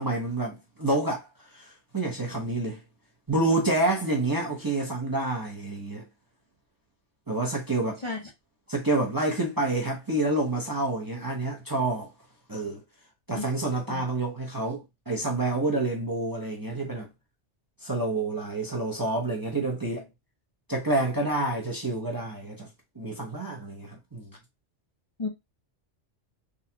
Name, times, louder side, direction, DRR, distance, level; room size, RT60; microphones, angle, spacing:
voice 1, 0.0-2.8 3.3-6.0 7.3-8.0 8.7-12.1 12.5-12.8 13.3-17.1 17.8-20.1 20.7-22.7 23.0-24.3, right 2 dB, 20° right, 0.6 m, -28 dB
voice 2, 8.0-8.2 13.3-13.4 13.9-14.0 25.2-25.3, left 3 dB, 35° left, 0.6 m, -31 dB
3.7 x 2.3 x 2.8 m
omnidirectional pair, 1.2 m